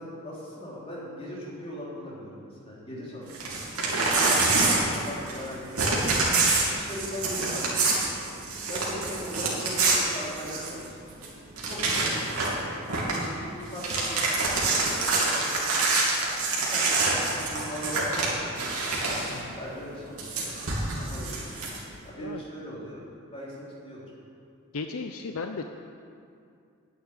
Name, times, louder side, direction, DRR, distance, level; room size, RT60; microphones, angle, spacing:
voice 1, 0.0-3.5 4.1-6.1 6.6-8.4 8.7-11.0 11.6-12.6 13.0-14.2 14.5-16.0 16.5-18.7 19.6-20.6 21.0-21.6 22.0-23.0 23.3-24.1, equal, 30° left, -6 dB, 3.5 m, -40 dB
voice 2, 2.9-3.2 19.3-19.6 22.2-22.4 24.7-25.6, left 4 dB, 70° left, 5 dB, 0.6 m, -36 dB
Crumpling crinkling / Tearing, 3.3-5.5 5.7-10.9 11.2-11.3 11.6-12.6 12.9-13.3 13.6-19.4 20.2-21.8, right 3 dB, 85° right, 3.0 m, -26 dB
9.6 x 8.5 x 9.8 m, 2.4 s
head